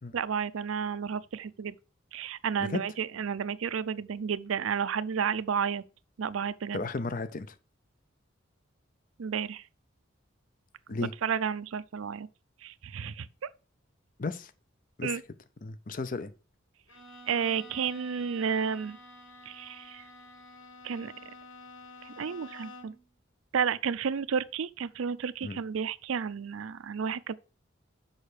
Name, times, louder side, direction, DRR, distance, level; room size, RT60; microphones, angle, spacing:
voice 1, 0.1-1.7 2.1-5.8 6.2-6.8 9.2-9.6 11.2-12.3 12.6-13.3 15.0-15.2 17.3-19.0 19.5-20.0 20.8-21.1 22.0-22.9 23.5-27.3, right 7 dB, 85° right, 0.4 m, -31 dB
voice 2, 6.7-7.6 10.9-11.1 14.2-14.5 15.0-15.2 15.6-16.3 25.4-25.6, left 3 dB, 40° left, 0.5 m, -34 dB
Bowed string instrument, 16.9-23.1, left 2 dB, 70° left, 1.5 m, -50 dB
6.5 x 5.5 x 4.9 m
head